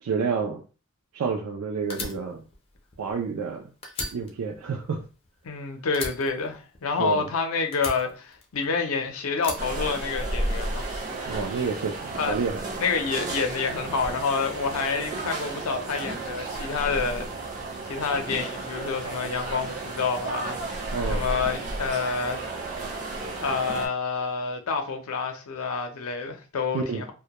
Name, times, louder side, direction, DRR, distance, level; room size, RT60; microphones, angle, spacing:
voice 1, 0.0-0.6 1.1-2.4 3.0-3.7 4.1-5.0 7.0-7.3 11.3-12.6 20.9-21.2 26.7-27.0, right 5 dB, 90° right, 0.4 m, -29 dB
Fire, 1.9-3.5 3.8-5.6 5.9-7.3 7.7-8.9 9.4-10.6, left 3 dB, 25° left, 0.4 m, -37 dB
voice 2, 5.4-11.0 11.3-11.4 12.1-12.4 12.8-17.3 17.8-22.5 23.4-27.1, left 5 dB, 80° left, 0.5 m, -28 dB
sound 1, 9.6-23.9, right 2 dB, 35° right, 0.5 m, -33 dB
2.1 x 2.1 x 2.8 m
head